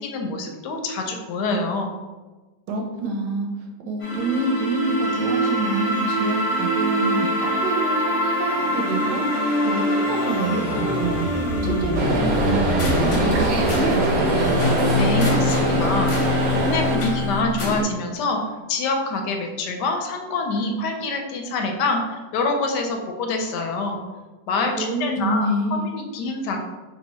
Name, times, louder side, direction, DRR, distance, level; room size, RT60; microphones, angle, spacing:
voice 1, 0.0-1.9 14.9-16.1 16.5-18.4 18.7-24.0 24.5-26.6, left 3 dB, 75° left, 3 dB, 1.1 m, -26 dB
voice 2, 2.7-3.5 3.8-9.2 9.6-11.3 11.6-14.3 24.8-25.9, right 2 dB, 75° right, 1 dB, 1.2 m, -27 dB
sound 1, 4.0-17.8, left 1 dB, 55° left, 1.0 m, -24 dB
Organ, 10.0-17.4, equal, 45° right, 0.8 m, -28 dB
sound 2, 11.9-17.0, right 2 dB, 90° right, 1.4 m, -24 dB
3.3 x 2.7 x 4.2 m, 1.2 s
omnidirectional pair, 1.9 m